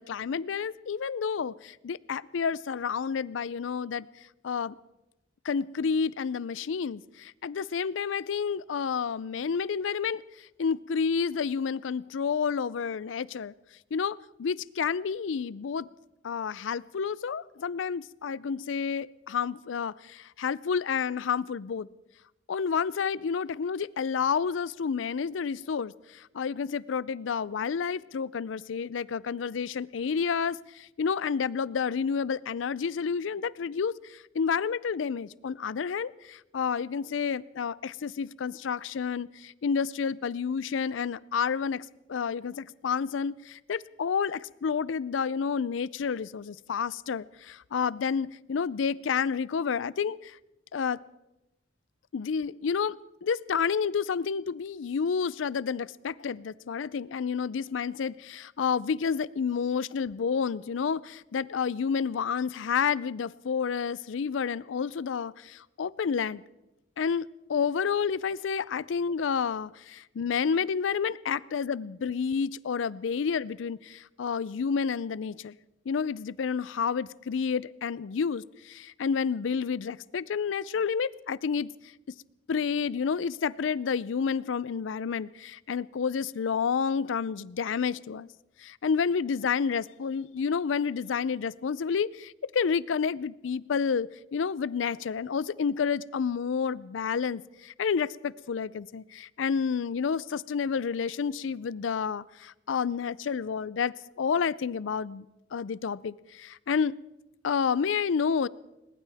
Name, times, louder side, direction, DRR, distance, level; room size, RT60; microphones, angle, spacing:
voice 1, 0.0-4.1 4.4-4.7 5.4-13.5 13.9-15.9 16.2-21.9 22.5-50.4 50.7-51.0 52.1-53.0 53.2-66.4 67.0-75.5 75.9-81.9 82.5-88.3 88.6-105.3 105.5-107.0 107.4-108.5, left 6 dB, 85° left, 21 dB, 0.4 m, -30 dB
21.0 x 20.0 x 3.5 m, 0.98 s
head